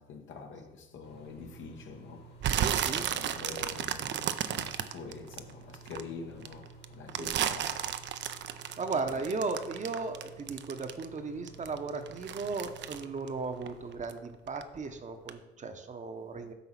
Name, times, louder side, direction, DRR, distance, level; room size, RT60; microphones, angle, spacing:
voice 1, 0.0-2.3 2.9-7.9 8.9-9.2 16.2-16.3, left 4 dB, 75° left, 1.1 m, -46 dB
sound 1, 1.0-14.0, right 3 dB, 55° left, 1.8 m, -53 dB
sound 2, 2.4-6.0 6.4-11.2 11.5-14.2 14.5-14.9 15.3-15.4, right 10 dB, 65° right, 0.5 m, -33 dB
voice 2, 2.5-3.6 7.2-7.4 8.8-16.5, right 4 dB, 35° right, 0.8 m, -36 dB
8.2 x 3.9 x 5.8 m
cardioid pair, 90°, 20 cm